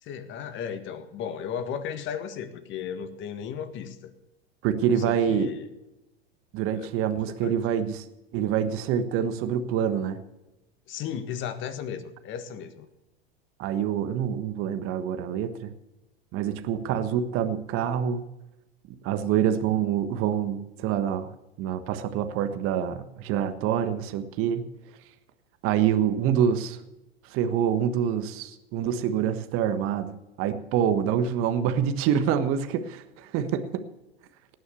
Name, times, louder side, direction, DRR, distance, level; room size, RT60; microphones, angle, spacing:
voice 1, 0.0-4.1 5.0-5.7 6.7-6.9 7.3-7.6 10.9-12.9, left 8 dB, 40° left, 10 dB, 1.7 m, -35 dB
voice 2, 4.6-5.5 6.5-8.0 8.3-10.2 13.6-15.7 16.3-18.2 19.0-21.3 21.6-24.7 25.6-26.8 27.3-33.8, right 9 dB, 45° right, 9 dB, 1.4 m, -26 dB
18.5 x 6.4 x 7.0 m, 0.95 s
hypercardioid pair, 105°, 31 cm